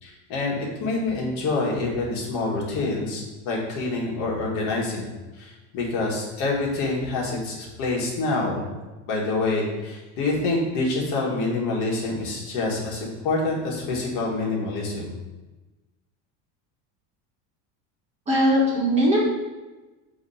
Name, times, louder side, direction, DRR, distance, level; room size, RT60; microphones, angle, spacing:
voice 1, 0.0-5.1 5.4-8.7 9.1-15.1, left 3 dB, 50° left, -3 dB, 1.7 m, -26 dB
voice 2, 18.3-19.2, equal, 20° right, -5 dB, 1.5 m, -20 dB
7.1 x 3.0 x 5.6 m, 1.2 s
cardioid pair, 175°, 36 cm